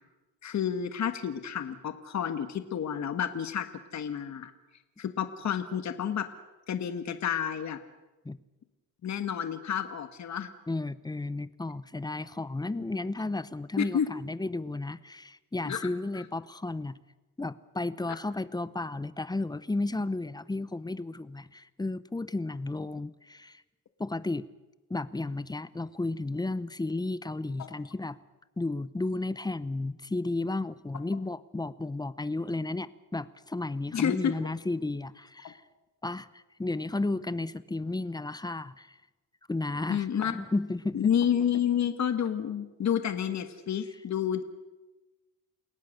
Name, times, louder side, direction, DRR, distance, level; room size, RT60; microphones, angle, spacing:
voice 1, 0.4-3.7 3.9-4.5 5.0-6.2 6.7-7.8 9.0-10.5 13.8-14.1 15.6-15.8 16.1-16.2 27.6-27.7 33.9-34.3 35.4-35.5 39.9-40.3 40.9-44.4, left 8 dB, 55° left, 9 dB, 1.6 m, -30 dB
voice 2, 10.7-17.0 17.4-23.6 24.0-24.5 24.9-28.2 28.6-35.6 36.0-38.9 39.5-40.1 40.3-41.1, left 2 dB, 10° left, 17 dB, 0.8 m, -33 dB
29.0 x 17.5 x 6.6 m, 1.1 s
cardioid pair, 105°, 33 cm